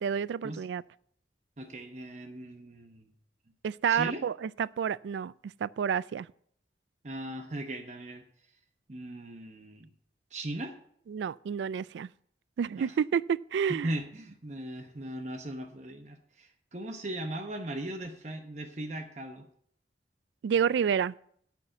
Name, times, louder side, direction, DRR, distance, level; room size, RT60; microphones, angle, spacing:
voice 1, 0.0-0.8 3.6-6.3 11.1-12.1 12.6-13.9 20.4-21.1, right 7 dB, 85° right, 0.3 m, -29 dB
voice 2, 1.6-3.1 3.9-4.2 7.0-8.2 8.9-9.9 10.3-10.7 12.8-12.9 13.7-19.5, right 1 dB, 40° right, 0.9 m, -38 dB
8.8 x 5.8 x 7.9 m
head